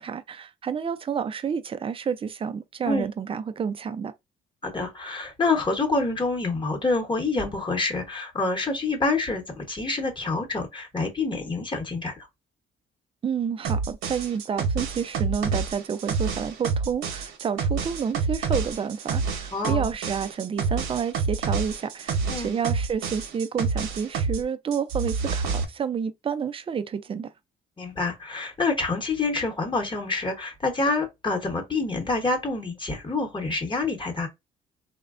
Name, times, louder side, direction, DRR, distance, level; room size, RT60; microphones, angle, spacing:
voice 1, 0.0-4.1 13.2-27.3, right 7 dB, 30° right, 0.4 m, -29 dB
voice 2, 4.6-12.3 19.5-19.9 22.3-22.5 27.8-34.3, left 3 dB, 25° left, 1.0 m, -27 dB
sound 1, 13.6-24.4 24.7-25.6, right 5 dB, 80° right, 0.8 m, -28 dB
3.1 x 2.2 x 2.4 m
cardioid pair, 90°, 20 cm